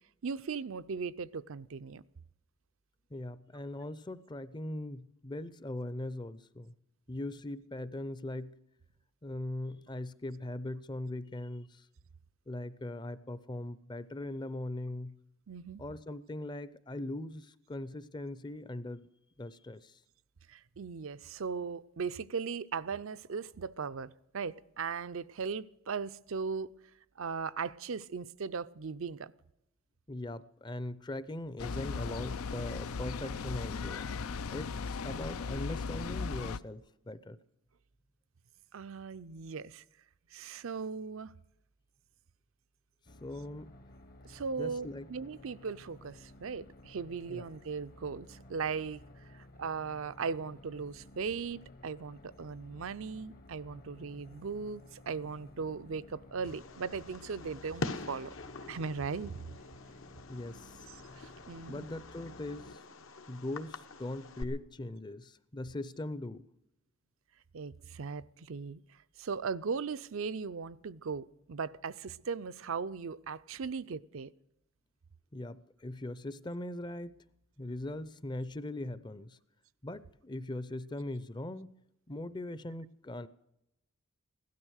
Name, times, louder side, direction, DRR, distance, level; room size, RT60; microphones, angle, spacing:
voice 1, 0.2-2.0 15.5-15.8 20.5-26.7 27.2-29.3 38.7-39.8 40.3-41.3 44.2-49.0 49.3-58.3 58.7-59.6 61.2-61.9 67.5-68.8 69.2-74.3, right 5 dB, 70° right, 14 dB, 0.5 m, -38 dB
voice 2, 3.1-6.7 7.1-8.5 9.2-11.9 12.5-15.1 15.8-19.1 19.4-20.0 30.1-34.1 34.5-37.4 43.2-43.7 44.6-45.1 47.3-47.4 60.3-60.9 61.7-62.8 63.3-66.5 75.3-77.2 77.6-79.4 79.8-81.7 82.1-83.3, left 1 dB, 20° left, 16 dB, 0.5 m, -40 dB
sound 1, 31.6-36.6, left 5 dB, 90° left, 0.5 m, -37 dB
sound 2, 43.1-62.8, left 1 dB, 45° left, 0.9 m, -55 dB
Fireworks, 56.4-64.4, left 3 dB, 70° left, 1.1 m, -45 dB
16.5 x 12.5 x 6.4 m, 0.84 s
head